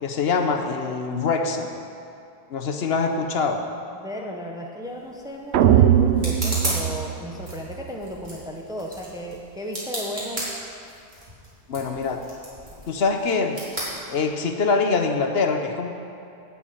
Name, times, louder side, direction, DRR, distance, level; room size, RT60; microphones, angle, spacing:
voice 1, 0.0-1.7 2.5-3.6 11.7-12.2 12.9-13.6 14.1-15.9, left 4 dB, 70° left, 5 dB, 1.1 m, -24 dB
voice 2, 3.9-10.5, left 1 dB, 5° right, 0 dB, 0.9 m, -35 dB
sound 1, 4.8-14.7, right 1 dB, 50° right, 3.4 m, -36 dB
sound 2, 5.5-7.8, right 10 dB, 85° right, 0.9 m, -19 dB
11.5 x 7.2 x 8.9 m, 2.6 s
omnidirectional pair, 1.1 m